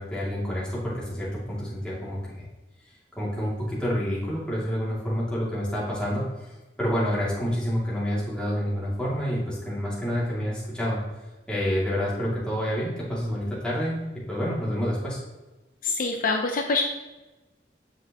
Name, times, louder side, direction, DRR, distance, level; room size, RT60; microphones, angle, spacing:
voice 1, 0.0-2.5 3.2-6.5 6.8-11.0 11.5-14.0 14.3-15.2, equal, 5° left, -7 dB, 2.5 m, -28 dB
voice 2, 15.8-16.8, left 3 dB, 50° left, 3 dB, 0.6 m, -25 dB
7.9 x 5.8 x 3.0 m, 1.1 s
head